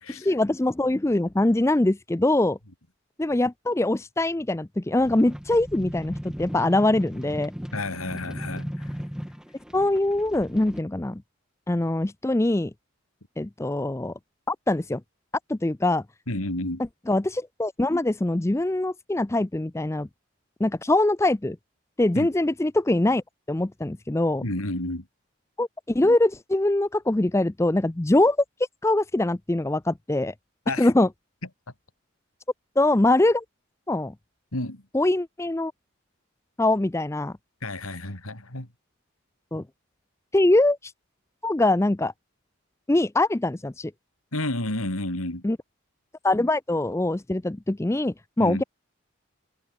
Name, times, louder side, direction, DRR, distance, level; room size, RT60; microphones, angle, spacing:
voice 1, 0.1-2.6 3.2-7.5 9.7-11.2 11.7-12.7 13.4-14.1 14.5-15.0 15.5-16.0 17.1-20.1 20.6-21.6 22.0-24.4 25.6-28.4 28.8-30.3 30.8-31.1 32.8-33.4 33.9-34.1 34.9-35.7 36.6-37.3 39.5-39.6 40.3-40.9 41.4-42.1 42.9-43.9 45.4-45.6 46.2-48.6, left 2 dB, 15° left, 0.4 m, -23 dB
sound 1, 5.0-10.8, equal, 5° right, 1.0 m, -37 dB
voice 2, 7.7-9.0 16.3-16.8 22.1-22.3 24.4-25.1 30.7-30.9 34.5-34.8 37.6-38.7 44.3-45.4 48.4-48.6, left 1 dB, 80° left, 4.6 m, -31 dB
head